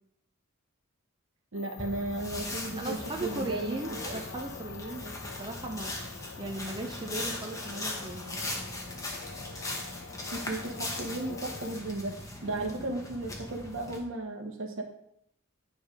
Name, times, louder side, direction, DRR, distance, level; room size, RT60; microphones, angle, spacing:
sound 1, 1.5-11.7, left 7 dB, 70° left, 0.4 m, -46 dB
voice 1, 1.5-4.2 10.3-14.8, right 2 dB, 70° right, 4 dB, 1.1 m, -35 dB
sound 2, 1.8-14.0, left 1 dB, 15° left, 1.0 m, -39 dB
voice 2, 2.8-5.1 5.4-6.0 6.4-8.5 12.5-12.8, right 2 dB, 20° right, 2 dB, 0.5 m, -37 dB
9.6 x 3.4 x 5.2 m, 0.74 s
head